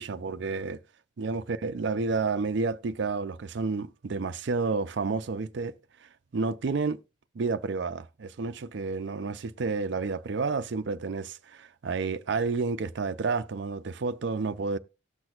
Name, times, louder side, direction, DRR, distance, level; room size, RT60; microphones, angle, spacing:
voice 1, 0.0-0.8 1.2-5.7 6.3-7.0 7.4-14.8, right 4 dB, 60° right, 0.5 m, -30 dB
18.0 x 6.1 x 2.4 m
head